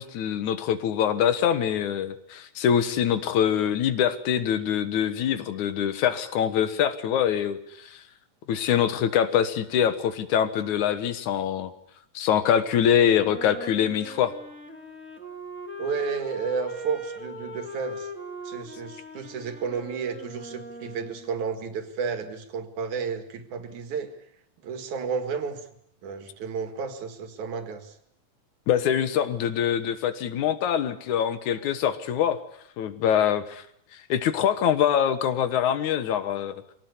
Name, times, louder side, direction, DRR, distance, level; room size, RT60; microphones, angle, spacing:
voice 1, 0.0-8.0 8.5-11.7 12.1-14.3 28.7-32.4 32.8-33.6 33.9-36.5, left 9 dB, 75° left, 12 dB, 2.8 m, -24 dB
Wind instrument woodwind instrument, 13.1-21.5, equal, 5° left, 2.0 m, -40 dB
voice 2, 15.8-18.1 18.5-24.1 24.6-25.6 26.0-27.9, right 6 dB, 75° right, 8 dB, 3.5 m, -32 dB
24.0 x 18.0 x 9.6 m, 0.70 s
omnidirectional pair, 3.5 m